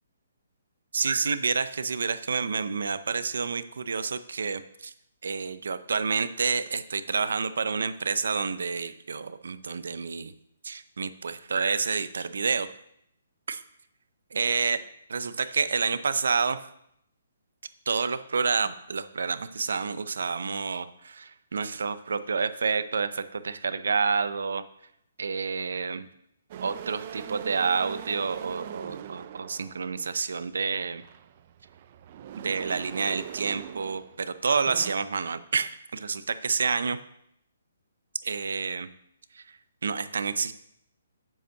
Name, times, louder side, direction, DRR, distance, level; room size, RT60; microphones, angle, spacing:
voice 1, 0.9-4.9 5.2-10.3 10.6-12.7 13.5-13.6 14.3-14.8 15.1-16.6 17.9-24.7 25.2-26.1 26.6-31.0 32.4-37.0 38.2-38.9 39.4-39.5 39.8-40.5, right 5 dB, 75° right, 13 dB, 0.6 m, -29 dB
sound 1, 26.5-30.3 30.9-34.2 34.5-34.9, right 10 dB, 30° right, 0.3 m, -41 dB
7.3 x 5.3 x 6.5 m, 0.73 s
hypercardioid pair, 170°, 0 cm